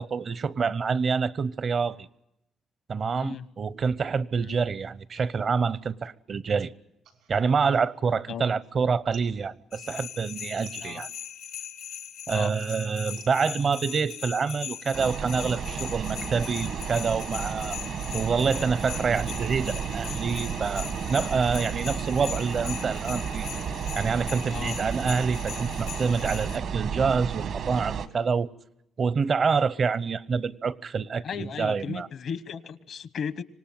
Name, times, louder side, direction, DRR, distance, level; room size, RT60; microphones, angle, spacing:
voice 1, 0.0-2.1 2.9-6.7 7.3-11.1 12.3-17.8 18.1-23.5 23.9-28.5 29.0-32.1, right 5 dB, 45° right, 0.7 m, -27 dB
sound 1, 7.0-8.5 8.8-11.4 11.8-15.0, right 8 dB, 85° right, 3.8 m, -54 dB
sound 2, 9.7-26.6, left 9 dB, 85° left, 1.4 m, -40 dB
sound 3, 14.9-28.1, right 7 dB, 70° right, 1.5 m, -33 dB
voice 2, 31.2-33.4, left 7 dB, 65° left, 1.0 m, -35 dB
25.5 x 18.5 x 7.5 m
cardioid pair, 90°, 0 cm